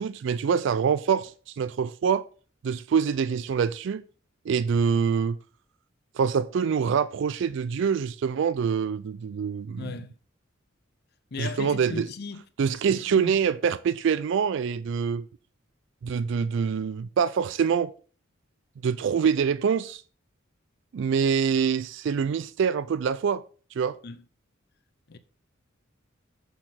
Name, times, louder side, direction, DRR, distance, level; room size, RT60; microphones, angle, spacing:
voice 1, 0.0-2.2 2.6-4.0 4.5-5.4 6.1-9.9 11.4-12.1 12.6-15.3 16.0-17.9 18.8-20.0 20.9-23.4 23.7-24.0, right 6 dB, 65° right, 0.3 m, -25 dB
voice 2, 9.7-10.1 11.3-12.4 12.9-13.3 24.0-24.2 25.1-25.2, left 4 dB, 50° left, 0.6 m, -37 dB
6.7 x 4.1 x 5.6 m
head